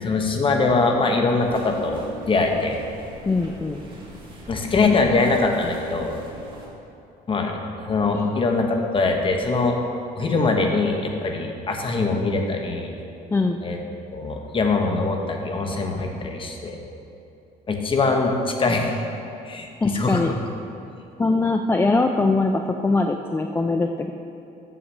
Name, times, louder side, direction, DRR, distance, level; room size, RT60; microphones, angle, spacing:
voice 1, 0.0-2.8 4.5-6.1 7.3-7.6 7.8-8.7 8.9-9.8 10.2-12.9 13.6-13.8 14.1-16.8 17.7-19.0 19.5-20.2, left 3 dB, 30° left, 3 dB, 1.1 m, -22 dB
sound 1, 1.4-6.7, right 2 dB, 30° right, 1.8 m, -41 dB
voice 2, 3.3-3.8 8.1-8.3 13.3-13.6 19.8-20.3 21.2-24.1, left 3 dB, 15° left, 4 dB, 0.3 m, -22 dB
7.2 x 5.9 x 6.5 m, 2.7 s
cardioid pair, 110°, 17 cm